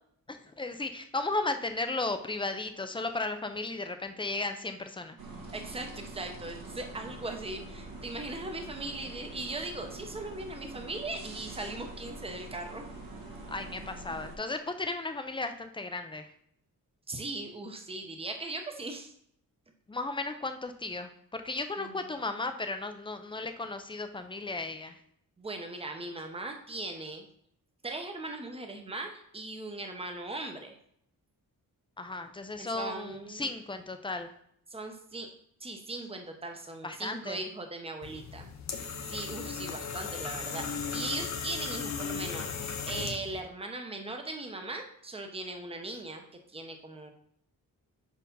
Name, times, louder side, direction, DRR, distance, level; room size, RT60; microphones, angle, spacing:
voice 1, 0.3-5.2 13.5-16.3 19.9-25.0 32.0-34.3 36.8-37.4, left 3 dB, 15° left, 8 dB, 0.4 m, -35 dB
sound 1, 5.2-14.4, right 2 dB, 75° right, 1.5 m, -45 dB
voice 2, 5.5-12.9 17.1-19.1 21.8-22.1 25.4-27.3 27.8-30.8 32.6-33.5 34.7-35.3 35.6-38.5 39.0-47.1, right 2 dB, 15° right, 4 dB, 0.7 m, -39 dB
sound 2, 38.0-43.4, left 6 dB, 50° left, 0.7 m, -36 dB
4.7 x 4.6 x 5.3 m, 0.70 s
wide cardioid pair, 155°, 35 cm